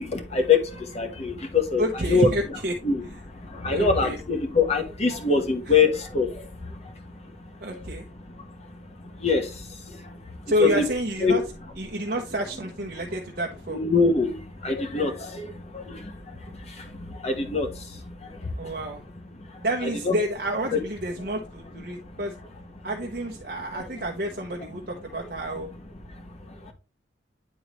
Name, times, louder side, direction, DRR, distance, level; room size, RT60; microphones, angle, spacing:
voice 1, 0.0-2.3 2.8-7.9 8.3-10.8 11.2-11.4 13.7-18.7 19.4-19.6 20.0-20.2 20.7-20.8 21.2-21.3 21.9-22.2 23.7-23.9 26.1-26.7, left 4 dB, 35° left, 4 dB, 1.2 m, -26 dB
voice 2, 1.8-2.7 3.7-4.2 7.6-8.0 10.5-11.4 11.8-13.8 18.6-19.0 19.6-22.3 22.8-25.7, equal, 55° right, 0 dB, 0.9 m, -29 dB
9.3 x 3.9 x 3.1 m, 0.29 s
head